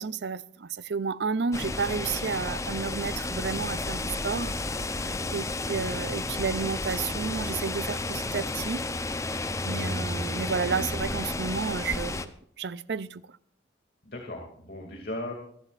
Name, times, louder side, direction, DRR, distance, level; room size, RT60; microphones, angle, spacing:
voice 1, 0.0-4.5 5.3-8.8 9.6-12.3 12.6-13.2, right 5 dB, 65° right, 0.5 m, -31 dB
sound 1, 1.5-12.3, left 2 dB, 15° left, 0.7 m, -32 dB
voice 2, 5.0-5.3 9.6-10.0 14.0-15.3, left 1 dB, 55° left, 2.6 m, -38 dB
25.5 x 11.5 x 2.5 m
head